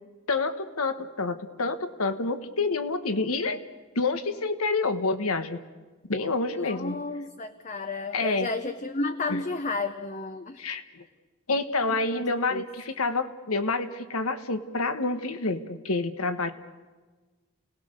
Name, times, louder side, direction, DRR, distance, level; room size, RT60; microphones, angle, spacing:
voice 1, 0.3-3.6 3.9-5.6 6.0-7.0 8.1-8.5 9.3-9.4 10.6-11.0 11.5-16.5, left 3 dB, 80° left, 10 dB, 1.4 m, -28 dB
voice 2, 6.5-10.6 11.9-12.6, left 3 dB, 35° left, 9 dB, 0.8 m, -32 dB
29.5 x 19.0 x 6.7 m, 1.3 s
head